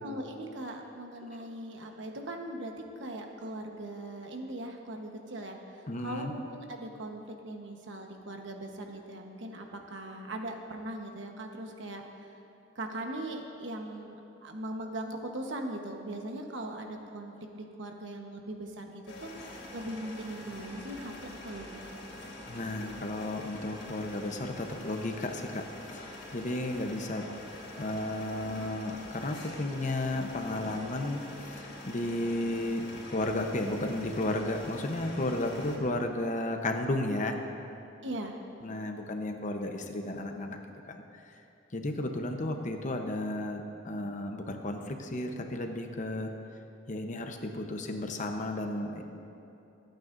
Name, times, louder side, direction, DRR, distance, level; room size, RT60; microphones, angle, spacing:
voice 1, 0.0-5.6 6.0-12.0 12.7-21.8 38.0-38.4, right 1 dB, 80° right, 3 dB, 1.2 m, -40 dB
voice 2, 5.9-6.3 22.4-27.2 27.8-37.4 37.7-37.8 38.6-40.6 40.9-41.3 41.7-46.3 46.9-49.0, left 1 dB, 45° left, 4 dB, 0.9 m, -33 dB
sound 1, 19.1-35.8, left 1 dB, 80° left, 2.6 m, -45 dB
25.5 x 9.0 x 2.6 m, 2.8 s
head